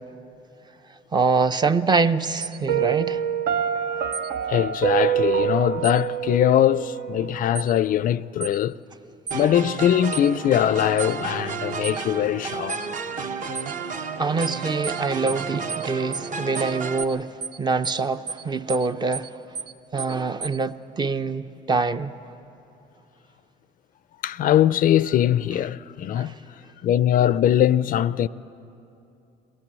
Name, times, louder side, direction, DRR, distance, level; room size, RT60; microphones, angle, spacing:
voice 1, 1.1-3.2 14.2-17.3 17.6-19.3 19.9-22.1 26.1-26.3, right 4 dB, 25° right, 0.6 m, -24 dB
sound 1, 2.4-2.6 4.1-4.3 5.8-6.0 7.5-7.7 8.4-8.6 9.3-9.4 10.1-10.3 11.0-11.1 11.8-12.0 12.7-12.9 13.5-13.7 14.4-14.6 14.8-15.0 15.3-15.4 15.7-15.9 16.1-16.3 16.5-16.7 17.0-17.1 17.4-17.6 17.8-18.0 18.3-18.4 18.7-18.9 19.1-19.3 19.5-19.7 20.0-20.1 20.4-20.6, right 5 dB, 80° right, 1.1 m, -33 dB
Piano, 2.7-7.6, right 9 dB, 65° right, 0.7 m, -26 dB
voice 2, 4.5-8.8 9.3-12.8 24.2-26.3 26.8-28.3, left 11 dB, 55° left, 0.4 m, -21 dB
sound 2, 9.3-17.0, right 5 dB, 50° right, 1.0 m, -32 dB
22.5 x 17.5 x 7.5 m
cardioid pair, 110°, 17 cm